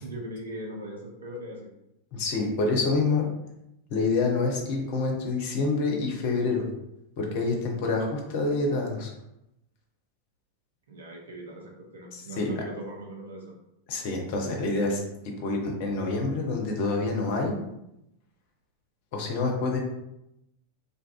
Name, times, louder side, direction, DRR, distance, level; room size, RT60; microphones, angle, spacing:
voice 1, 0.0-1.7 10.9-13.4, right 1 dB, 65° right, -1 dB, 0.6 m, -39 dB
voice 2, 2.1-3.3 3.9-6.6 7.2-9.1 12.1-12.5 13.9-17.5 19.1-19.8, left 3 dB, 50° left, 1 dB, 0.6 m, -27 dB
2.6 x 2.4 x 2.3 m, 0.85 s
figure-of-eight pair, 90°, 0 cm